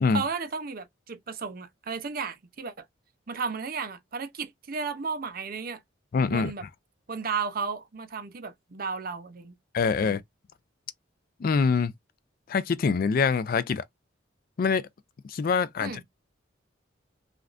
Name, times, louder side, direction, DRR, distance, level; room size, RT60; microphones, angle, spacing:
voice 1, 0.1-2.9 3.3-5.8 6.2-6.6 7.1-9.5 10.0-10.2 15.8-16.0, right 5 dB, 50° right, 0.6 m, -34 dB
voice 2, 6.1-6.5 9.7-10.2 11.4-11.9 12.5-13.8 14.6-14.9 15.3-15.9, left 5 dB, 50° left, 0.3 m, -24 dB
3.3 x 2.5 x 2.4 m
head